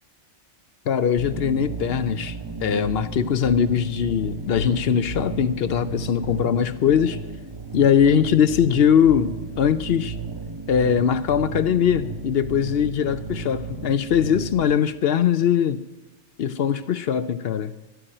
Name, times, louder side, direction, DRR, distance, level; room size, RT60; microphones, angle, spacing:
voice 1, 0.9-7.2 7.7-10.2 10.7-15.8 16.4-17.7, left 8 dB, 60° left, 0.8 m, -21 dB
sound 1, 1.2-14.7, right 4 dB, 25° right, 0.8 m, -34 dB
11.5 x 9.4 x 8.7 m
omnidirectional pair, 1.2 m